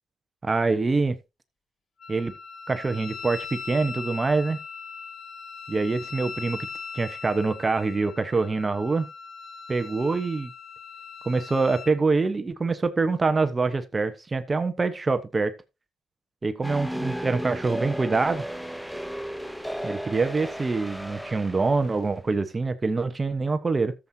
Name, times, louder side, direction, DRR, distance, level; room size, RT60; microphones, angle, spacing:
voice 1, 0.4-1.2 2.1-2.3 2.7-4.6 5.7-6.7 6.9-9.1 9.7-10.5 11.2-15.5 16.4-18.4 19.8-23.9, right 3 dB, 25° right, 1.1 m, -25 dB
Wind instrument woodwind instrument, 2.0-12.0, left 5 dB, 55° left, 1.7 m, -40 dB
sound 1, 16.6-21.9, equal, ahead, 0.6 m, -34 dB
13.5 x 7.5 x 2.8 m
cardioid pair, 90°, 0 cm